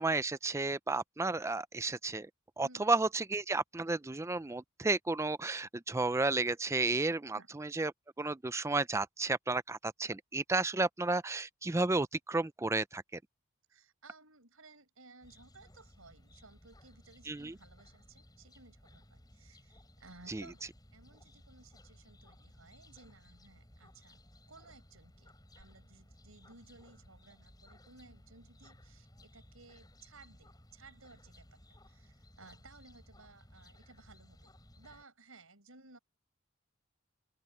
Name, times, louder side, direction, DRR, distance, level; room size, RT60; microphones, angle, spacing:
voice 1, 0.0-2.3 2.6-7.9 8.2-13.2 17.3-17.5 20.3-20.4, right 3 dB, 15° right, 0.4 m, -32 dB
voice 2, 7.3-7.8 13.7-24.2 24.5-31.6 31.9-36.0, right 3 dB, 85° right, 6.2 m, -58 dB
sound 1, 15.2-35.0, left 1 dB, 20° left, 6.2 m, -59 dB
open air
head